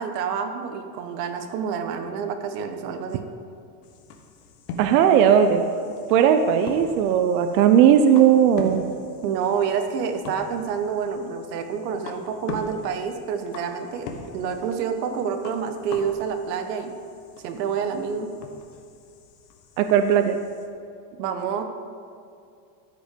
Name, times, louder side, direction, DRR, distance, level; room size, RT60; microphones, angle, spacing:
voice 1, 0.0-3.2 9.2-16.9 17.4-18.3 21.2-21.6, right 6 dB, 85° right, 7 dB, 1.2 m, -28 dB
sound 1, 3.8-20.7, left 4 dB, 75° left, 1.3 m, -42 dB
voice 2, 4.8-5.6 6.1-8.8 19.8-20.4, right 8 dB, 65° right, 8 dB, 0.7 m, -17 dB
13.5 x 5.3 x 5.1 m, 2.4 s
supercardioid pair, 175°, 47 cm